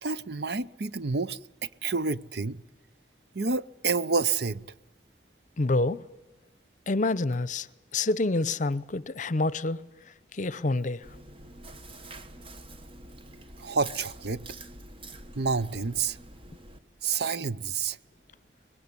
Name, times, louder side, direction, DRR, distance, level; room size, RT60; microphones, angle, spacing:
voice 1, 0.0-2.6 3.3-4.6 13.6-14.4 15.4-16.2 17.0-18.0, right 4 dB, 65° right, 0.8 m, -29 dB
voice 2, 5.6-6.1 6.9-7.7 7.9-9.9 10.3-11.1, left 2 dB, 45° left, 0.8 m, -27 dB
Chewing mastication, 11.0-16.8, right 3 dB, 30° right, 1.5 m, -45 dB
24.0 x 21.0 x 9.8 m
head